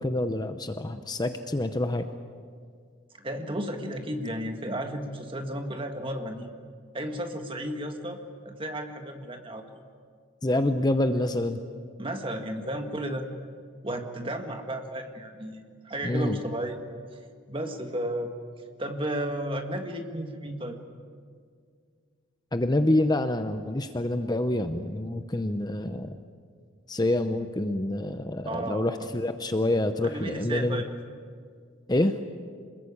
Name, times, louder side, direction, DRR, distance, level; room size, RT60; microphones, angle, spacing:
voice 1, 0.0-2.1 10.4-11.6 16.0-16.4 22.5-26.2 26.9-30.8 31.9-32.2, left 1 dB, 20° left, 8 dB, 0.7 m, -27 dB
voice 2, 3.2-6.5 6.9-8.2 8.5-9.8 12.0-13.3 13.8-16.8 17.5-18.3 18.8-20.8 28.5-29.1 30.0-30.9, right 1 dB, 25° right, 5 dB, 1.8 m, -33 dB
26.5 x 21.0 x 8.7 m, 2.1 s
head